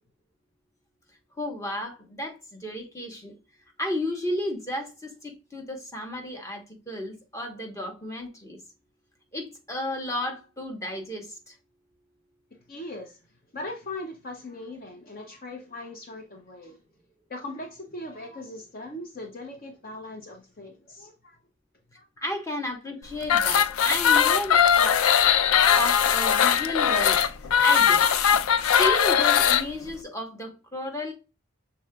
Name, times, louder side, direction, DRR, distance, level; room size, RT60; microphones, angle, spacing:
voice 1, 1.4-3.3 3.8-8.6 9.3-11.5 22.2-25.1 25.7-27.2 27.6-28.2 28.8-31.1, left 1 dB, 15° left, 1.0 m, -33 dB
voice 2, 12.7-13.2 13.5-16.8 17.3-21.4 22.0-22.1, left 2 dB, 40° left, 0.6 m, -39 dB
sound 1, 23.2-29.6, left 8 dB, 85° left, 0.4 m, -20 dB
6.2 x 3.7 x 2.2 m
head